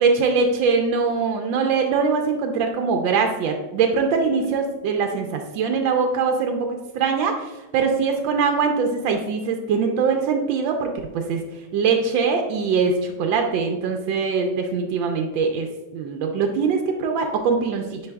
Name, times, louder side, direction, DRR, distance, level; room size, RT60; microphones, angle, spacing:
voice 1, 0.0-11.4 11.7-15.7 15.9-18.0, right 5 dB, 90° right, 3 dB, 1.3 m, -22 dB
9.6 x 4.6 x 2.2 m, 1.2 s
omnidirectional pair, 2.1 m